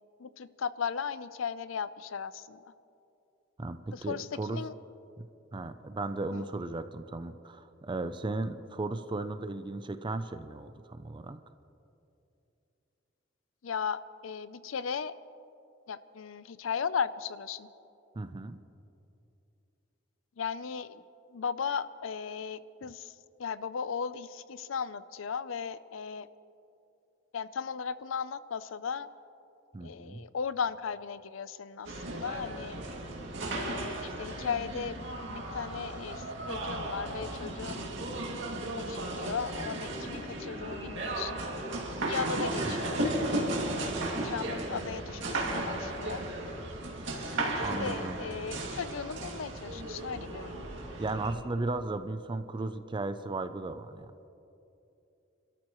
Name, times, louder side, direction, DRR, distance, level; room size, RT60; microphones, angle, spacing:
voice 1, 0.2-2.6 3.9-4.7 6.3-6.5 13.6-15.1 15.9-17.7 20.4-21.0 21.3-26.3 27.3-29.1 29.8-32.8 33.5-35.0 35.3-37.9 38.8-41.4 42.1-43.5 44.2-46.2 47.8-50.6, left 6 dB, 75° left, 15 dB, 0.5 m, -36 dB
voice 2, 3.6-4.6 5.2-5.3 5.5-11.4 18.2-18.6 29.7-30.2 42.7-43.1 47.6-48.2 51.0-54.1, right 2 dB, 25° right, 10 dB, 0.5 m, -36 dB
sound 1, 31.8-51.3, right 2 dB, 65° right, 2.3 m, -35 dB
sound 2, 39.6-44.6, equal, 5° right, 4.4 m, -46 dB
28.5 x 13.0 x 3.1 m, 2.8 s
head